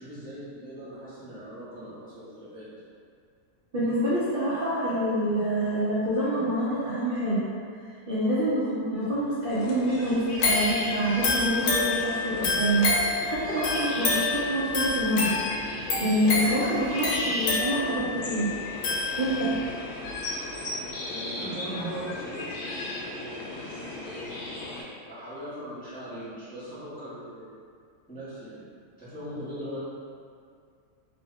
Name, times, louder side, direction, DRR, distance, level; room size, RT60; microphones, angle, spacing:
voice 1, 0.0-2.6 21.1-22.5 23.4-24.4 25.1-27.5 28.1-28.7 29.0-29.8, right 1 dB, 10° left, -13 dB, 0.6 m, -39 dB
voice 2, 3.7-7.5 8.1-15.3 16.0-18.5 19.2-19.6, right 1 dB, 55° right, -13 dB, 0.6 m, -26 dB
sound 1, 9.5-24.8, left 2 dB, 90° left, 0.6 m, -36 dB
sound 2, 10.4-19.7 20.1-20.2, left 3 dB, 70° left, 1.1 m, -28 dB
2.9 x 2.1 x 3.5 m, 2.2 s
omnidirectional pair, 1.7 m